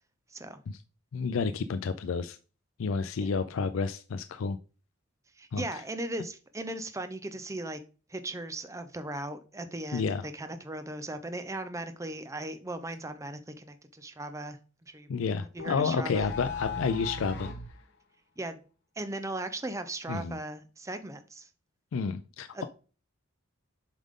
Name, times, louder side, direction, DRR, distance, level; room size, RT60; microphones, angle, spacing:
voice 1, 1.1-2.4 2.8-4.6 5.5-5.8 9.9-10.2 15.1-17.5 20.1-20.4 21.9-22.7, left 5 dB, 75° left, 0.4 m, -30 dB
voice 2, 5.4-7.8 8.1-15.1 15.5-16.3 18.4-18.6 19.0-21.5 22.5-22.7, right 2 dB, 15° right, 0.6 m, -38 dB
sound 1, 15.6-17.7, left 3 dB, 55° left, 1.0 m, -37 dB
7.4 x 5.1 x 3.7 m
head